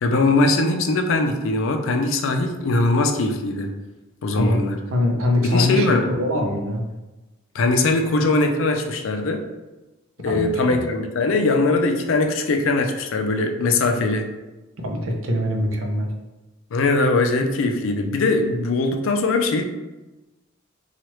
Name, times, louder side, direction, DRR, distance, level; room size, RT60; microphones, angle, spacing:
voice 1, 0.0-3.7 4.2-4.8 5.4-6.1 7.5-9.4 10.2-14.3 16.7-19.6, left 2 dB, 70° left, 5 dB, 0.4 m, -21 dB
voice 2, 4.9-6.8 10.2-10.8 14.8-16.1, left 1 dB, 85° right, 1 dB, 0.6 m, -23 dB
3.0 x 2.3 x 3.0 m, 1.1 s
head